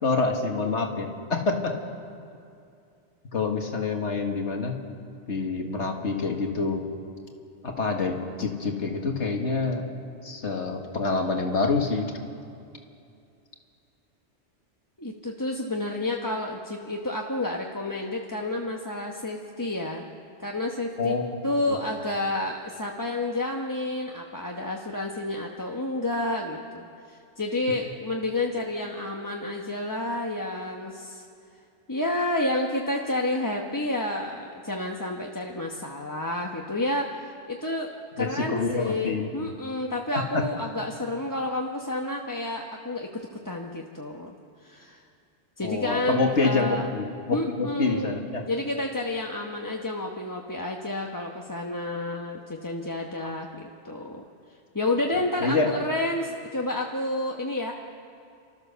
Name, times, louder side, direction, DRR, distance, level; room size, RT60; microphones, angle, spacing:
voice 1, 0.0-1.7 3.3-4.8 5.3-6.8 7.6-9.8 10.2-12.1 21.0-21.4 21.7-21.8 38.2-39.5 40.1-40.5 45.6-48.5 55.4-55.7, left 4 dB, 75° left, 3 dB, 2.1 m, -27 dB
voice 2, 15.0-20.0 20.4-21.1 21.4-31.2 31.9-37.9 38.2-44.3 44.6-45.0 45.6-46.8 47.3-48.1 48.4-54.2 54.7-57.7, left 1 dB, 20° left, 0 dB, 1.0 m, -30 dB
29.0 x 13.0 x 6.9 m, 2.5 s
omnidirectional pair, 1.2 m